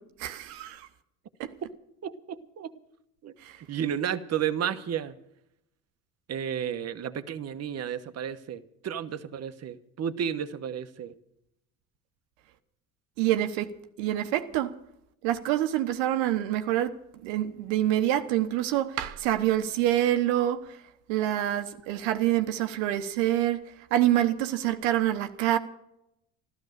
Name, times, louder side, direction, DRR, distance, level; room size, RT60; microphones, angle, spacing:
voice 1, 0.2-0.9 3.4-3.6 13.2-13.7 14.0-14.7 15.2-20.8 21.1-23.6 23.9-25.6, right 13 dB, 80° right, 1.2 m, -26 dB
voice 2, 2.0-2.7 3.2-3.3 3.7-5.1 6.3-11.1, right 9 dB, 40° right, 1.2 m, -32 dB
13.5 x 13.0 x 6.7 m
supercardioid pair, 75°, 38 cm